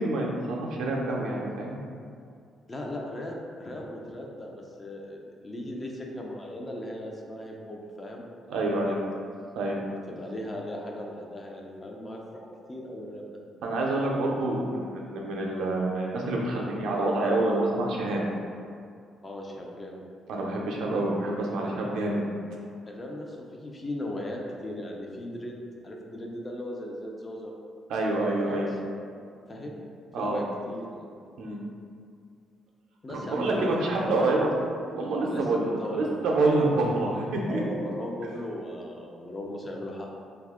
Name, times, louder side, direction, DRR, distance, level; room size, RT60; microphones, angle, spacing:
voice 1, 0.0-1.8 8.5-9.0 9.6-9.8 13.6-18.2 20.3-22.2 27.9-28.7 30.1-30.4 31.4-31.6 33.1-34.5 34.9-37.6, right 2 dB, 80° right, -2 dB, 0.5 m, -27 dB
voice 2, 2.7-9.0 10.1-12.4 12.7-13.4 19.2-20.0 22.9-25.6 25.8-27.5 28.0-28.6 29.5-29.8 30.2-31.1 33.0-34.6 35.3-35.5 35.8-36.1 37.5-40.1, left 1 dB, 25° left, 0 dB, 0.5 m, -37 dB
2.7 x 2.3 x 3.5 m, 2.3 s
cardioid pair, 90°, 0 cm